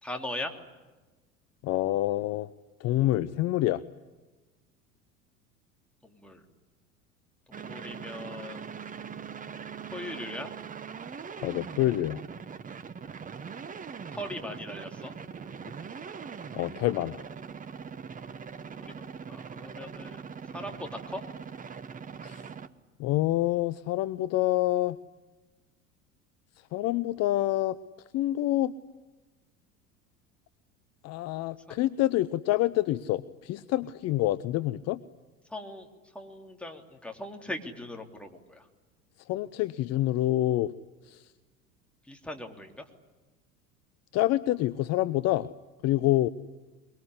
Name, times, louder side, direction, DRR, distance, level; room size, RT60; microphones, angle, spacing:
voice 1, 0.0-0.6 6.0-6.4 7.5-8.7 9.9-10.5 14.1-15.1 18.8-20.2 20.5-21.2 35.5-35.9 36.1-38.6 42.1-42.7, left 1 dB, 5° left, 2 dB, 3.3 m, -39 dB
voice 2, 1.6-2.5 2.8-3.8 11.4-12.2 16.5-17.2 22.2-22.4 23.0-25.0 26.7-27.8 28.1-28.7 31.0-35.0 39.3-40.7 41.1-41.2 44.1-45.5 45.8-46.3, left 15 dB, 40° left, 15 dB, 0.8 m, -27 dB
sound 1, 7.5-22.7, right 6 dB, 20° right, 1.1 m, -41 dB
23.5 x 23.0 x 9.9 m, 1.2 s
figure-of-eight pair, 75°, 41 cm